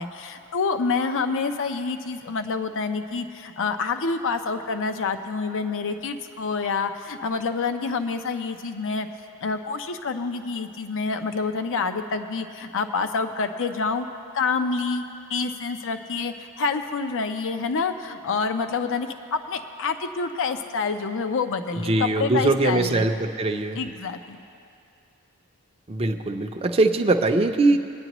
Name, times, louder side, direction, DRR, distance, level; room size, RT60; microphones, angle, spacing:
voice 1, 0.0-9.1 9.4-14.1 14.3-15.0 15.3-23.0 23.7-24.4, left 4 dB, 60° left, 8 dB, 0.6 m, -27 dB
voice 2, 21.8-23.8 25.9-27.8, right 2 dB, 25° right, 4 dB, 0.5 m, -21 dB
22.0 x 9.8 x 3.0 m, 2.5 s
head